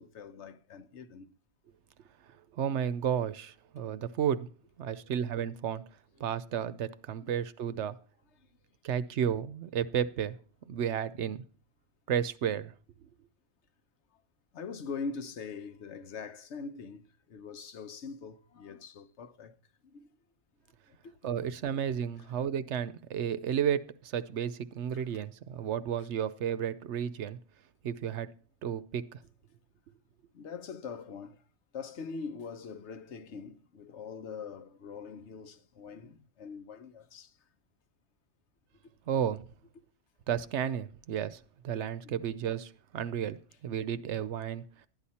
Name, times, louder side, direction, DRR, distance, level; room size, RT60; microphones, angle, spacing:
voice 1, 0.0-1.3 7.2-7.4 7.8-7.9 14.5-19.6 19.9-20.1 21.0-21.1 24.9-25.0 26.0-26.1 30.3-31.4 31.7-37.3 42.0-42.2, left 5 dB, 80° left, 1.2 m, -43 dB
voice 2, 2.5-4.5 4.8-5.8 6.2-8.0 8.8-10.4 10.7-11.4 12.1-12.7 21.2-27.4 27.8-28.3 28.6-29.2 39.1-39.4 40.3-44.6, right 9 dB, 80° right, 1.0 m, -32 dB
12.5 x 9.9 x 4.2 m
omnidirectional pair, 1.2 m